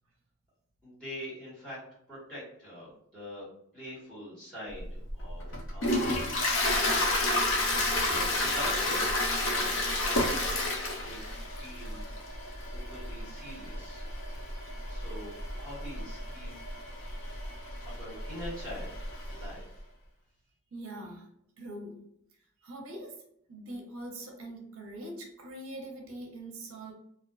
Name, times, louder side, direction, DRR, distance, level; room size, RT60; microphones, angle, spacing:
voice 1, 0.8-1.8 2.1-3.5 3.7-6.4 8.1-9.7 10.0-10.7 11.0-12.0 12.7-14.1 14.9-16.5 17.8-19.9, equal, 5° left, -11 dB, 1.2 m, -44 dB
Toilet flush, 4.8-19.5, left 1 dB, 60° left, 0.5 m, -31 dB
voice 2, 20.7-21.3 21.6-22.0 22.6-23.2 23.5-26.9, right 1 dB, 75° right, 0 dB, 0.6 m, -42 dB
2.4 x 2.2 x 2.3 m, 0.71 s
head